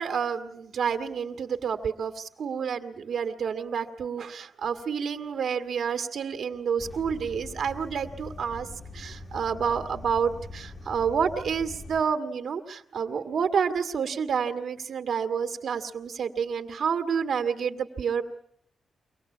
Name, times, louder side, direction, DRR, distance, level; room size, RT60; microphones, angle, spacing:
voice 1, 0.0-8.7 8.9-18.2, right 6 dB, 65° right, 6 dB, 1.7 m, -29 dB
sound 1, 6.8-12.0, left 2 dB, 30° left, 1.1 m, -43 dB
24.5 x 18.0 x 8.4 m, 0.72 s
cardioid pair, 120°, 0 cm